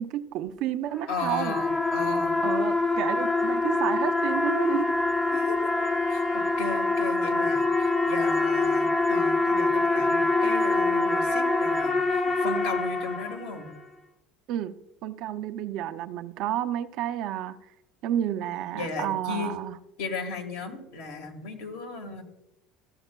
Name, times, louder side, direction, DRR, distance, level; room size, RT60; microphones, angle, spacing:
voice 1, 0.0-1.6 2.4-4.9 14.5-14.7 15.0-17.6 18.0-19.8, right 11 dB, 60° right, 10 dB, 0.5 m, -30 dB
sound 1, 0.9-13.7, left 3 dB, 25° left, 0.5 m, -25 dB
voice 2, 1.1-2.4 5.3-5.6 6.1-13.7 18.7-19.5 20.0-22.2, left 3 dB, 80° left, 3 dB, 1.5 m, -36 dB
14.0 x 7.1 x 2.2 m, 0.91 s
supercardioid pair, 110°, 0 cm